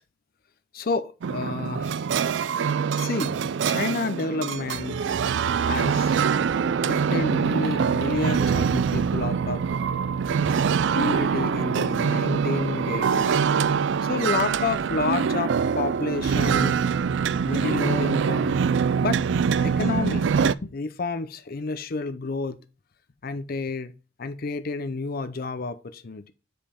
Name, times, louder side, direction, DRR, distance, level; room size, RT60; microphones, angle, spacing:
voice 1, 0.7-1.9 3.0-5.1 5.7-6.2 6.8-9.7 10.9-13.4 14.0-16.8 17.5-18.6 18.9-19.3 19.6-20.3 20.6-22.6 23.2-23.9 24.2-26.3, left 3 dB, 50° left, 0.6 m, -30 dB
sound 1, 1.2-20.5, right 6 dB, 65° right, 0.3 m, -24 dB
7.4 x 5.2 x 4.3 m
head